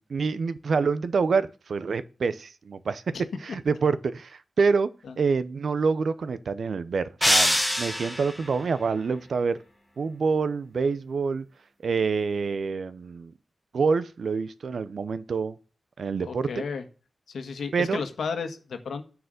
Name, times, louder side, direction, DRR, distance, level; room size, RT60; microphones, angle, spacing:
voice 1, 0.0-3.0 3.4-4.9 5.2-9.6 10.0-11.4 11.8-13.3 13.7-15.6 16.0-16.5 17.7-18.0, right 5 dB, 65° right, 0.7 m, -26 dB
sound 1, 7.2-8.5, equal, ahead, 1.7 m, -23 dB
voice 2, 16.3-16.8 17.3-19.0, left 5 dB, 90° left, 1.5 m, -33 dB
10.0 x 4.9 x 6.5 m
wide cardioid pair, 130°, 0 cm